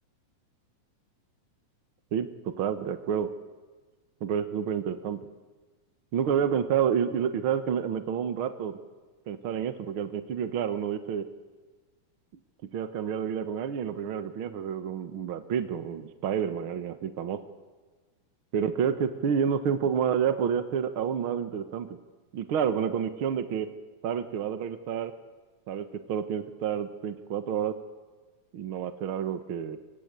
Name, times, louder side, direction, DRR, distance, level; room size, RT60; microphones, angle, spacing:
voice 1, 2.1-3.3 4.2-5.2 6.1-8.8 9.3-11.3 12.7-17.4 18.5-22.0 22.3-23.7 24.0-25.1 25.7-27.7 28.5-29.8, right 8 dB, 55° right, 10 dB, 1.7 m, -29 dB
25.0 x 24.5 x 9.1 m, 1.4 s
omnidirectional pair, 3.6 m